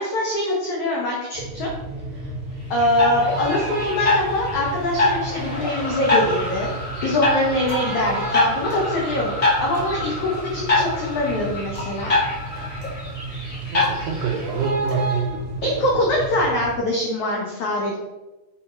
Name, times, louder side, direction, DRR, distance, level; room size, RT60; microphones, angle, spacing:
voice 1, 0.0-1.7 2.7-6.7 7.0-12.2 15.6-18.0, left 1 dB, 75° left, -2 dB, 1.7 m, -23 dB
sound 1, 1.3-16.8, right 2 dB, 60° right, 1.4 m, -33 dB
sound 2, 2.8-14.7, left 2 dB, 35° left, 1.4 m, -25 dB
sound 3, 7.7-15.9, left 1 dB, 55° left, 1.2 m, -40 dB
voice 2, 13.7-16.1, right 6 dB, 75° right, 2 dB, 1.9 m, -27 dB
7.8 x 4.5 x 4.4 m, 1.1 s
omnidirectional pair, 4.9 m